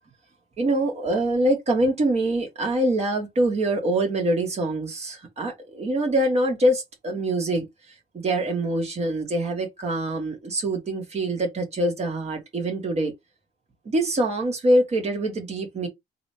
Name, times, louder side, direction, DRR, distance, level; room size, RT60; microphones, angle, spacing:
voice 1, 0.6-7.6 8.1-13.1 13.9-15.9, right 1 dB, 40° right, 2.3 m, -24 dB
3.7 x 3.6 x 2.9 m
cardioid pair, 110°, 17 cm